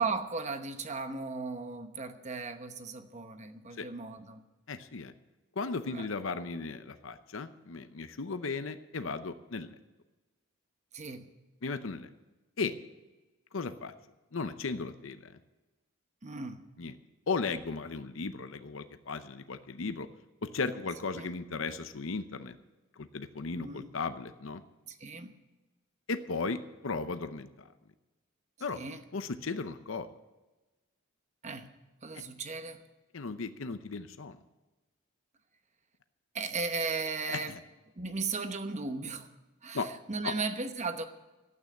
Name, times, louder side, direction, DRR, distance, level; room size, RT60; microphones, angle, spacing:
voice 1, 0.0-4.4 5.9-6.1 10.9-11.3 16.2-16.6 21.2-21.3 23.5-23.9 24.9-25.4 28.7-29.1 31.4-31.7 32.0-32.8 36.3-37.6 38.0-39.3 39.6-41.0, right 4 dB, 35° right, 8 dB, 1.0 m, -36 dB
voice 2, 4.7-5.1 5.6-9.7 11.6-12.1 12.6-12.8 13.5-13.9 14.3-15.4 16.8-16.9 17.3-20.1 20.4-22.6 23.0-24.6 26.1-27.7 28.6-28.8 29.1-30.1 32.1-32.2 33.1-34.4 37.3-37.6 39.7-39.9 40.2-40.3, left 4 dB, 65° left, 10 dB, 0.7 m, -36 dB
12.0 x 8.9 x 9.6 m, 1.1 s
head